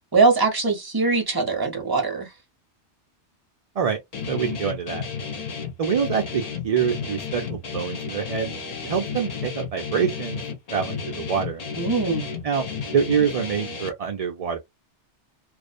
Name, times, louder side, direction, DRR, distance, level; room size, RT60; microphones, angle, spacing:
voice 1, 0.1-2.3 11.8-12.3, right 4 dB, 25° right, 0.7 m, -21 dB
Guitar, 4.1-13.9, left 5 dB, 50° left, 0.5 m, -32 dB
voice 2, 4.3-5.0 5.8-8.5 8.8-10.4 10.7-11.6 12.4-12.6 12.9-14.6, right 7 dB, 60° right, 0.4 m, -25 dB
2.4 x 2.1 x 2.4 m
omnidirectional pair, 1.2 m